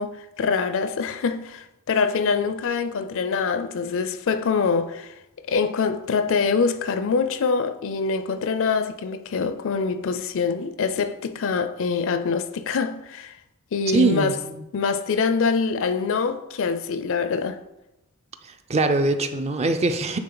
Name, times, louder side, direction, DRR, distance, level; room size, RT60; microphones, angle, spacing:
voice 1, 0.0-5.1 5.5-13.3 13.7-14.4 14.7-17.6, left 5 dB, 60° left, 0.4 m, -24 dB
voice 2, 13.9-14.6 18.7-20.2, right 2 dB, 30° right, 0.4 m, -22 dB
8.9 x 3.6 x 3.9 m
head